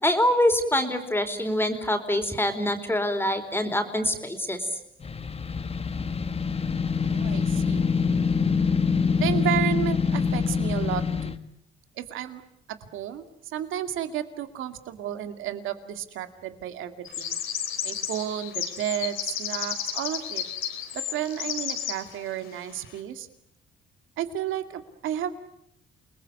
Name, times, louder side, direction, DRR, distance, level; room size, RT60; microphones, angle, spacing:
voice 1, 0.0-4.8, left 1 dB, 10° left, 6 dB, 4.1 m, -25 dB
sound 1, 5.0-11.4, left 5 dB, 30° left, 1.8 m, -25 dB
voice 2, 6.9-7.8 9.2-11.4 12.0-12.4 12.8-16.9 17.2-17.4 17.8-20.4 20.9-23.3 24.2-25.3, right 11 dB, 85° right, 9 dB, 2.3 m, -32 dB
sound 2, 17.0-22.0, left 9 dB, 85° left, 4.0 m, -32 dB
29.0 x 20.5 x 9.5 m, 0.75 s
cardioid pair, 90°, 20 cm